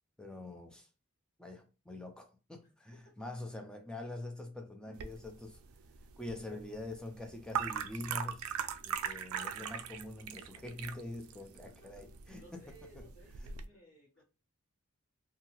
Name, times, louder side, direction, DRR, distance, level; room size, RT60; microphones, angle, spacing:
voice 1, 0.2-0.9 1.4-5.6 6.2-8.5 8.9-12.6 12.9-13.1, left 2 dB, 5° left, 0.3 m, -45 dB
sound 1, 5.0-13.7, right 8 dB, 75° right, 0.3 m, -41 dB
voice 2, 12.4-14.2, right 1 dB, 55° left, 0.9 m, -59 dB
2.7 x 2.3 x 2.9 m
head